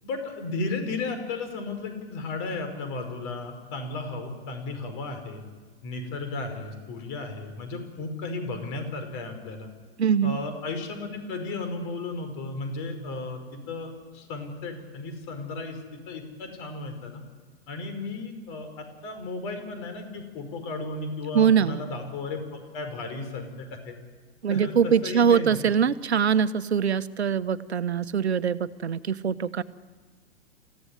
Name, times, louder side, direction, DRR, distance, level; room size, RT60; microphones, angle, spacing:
voice 1, 0.0-5.4 5.8-9.7 10.2-17.2 17.7-24.0 24.5-25.6, left 3 dB, 40° left, 7 dB, 5.2 m, -34 dB
voice 2, 10.0-10.4 21.3-21.8 24.4-29.6, right 7 dB, 75° right, 15 dB, 1.1 m, -23 dB
28.0 x 16.0 x 9.9 m, 1.5 s
figure-of-eight pair, 105°, 33 cm